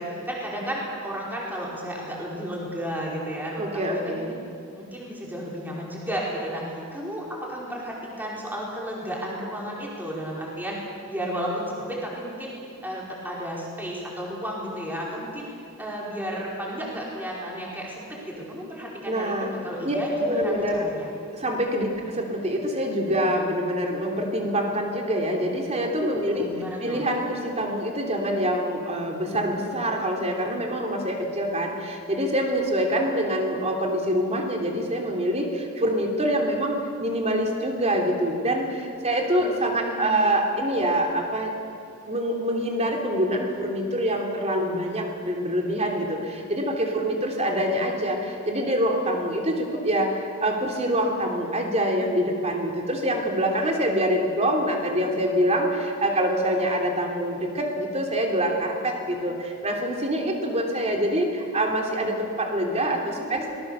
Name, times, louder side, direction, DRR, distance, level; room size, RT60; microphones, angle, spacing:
voice 1, 0.0-4.4 4.8-10.8 11.1-12.5 12.8-15.5 15.8-21.1 21.9-22.1 26.2-27.1 39.4-40.3 63.0-63.5, equal, 10° right, -4 dB, 4.9 m, -33 dB
voice 2, 3.6-4.4 19.0-19.5 19.8-20.9 21.3-26.5 26.8-41.5 42.0-63.5, equal, 30° right, 1 dB, 3.4 m, -25 dB
25.5 x 20.0 x 7.0 m, 2.5 s
head